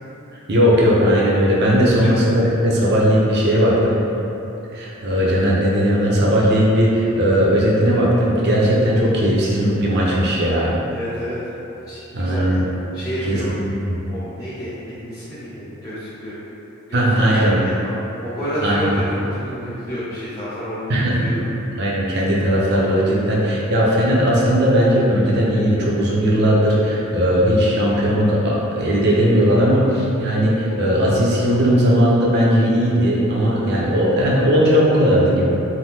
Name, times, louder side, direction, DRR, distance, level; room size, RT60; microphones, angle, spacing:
voice 1, 0.5-4.0 4.7-10.8 12.1-12.6 13.3-14.0 16.9-17.6 18.6-18.9 20.9-21.2 21.8-35.4, equal, 50° right, -5 dB, 0.5 m, -17 dB
voice 2, 10.9-11.4 11.9-12.7 12.9-13.5 14.1-16.4 16.9-17.9 18.2-21.5, equal, 15° left, -14 dB, 0.5 m, -30 dB
3.3 x 2.1 x 2.8 m, 3.0 s
head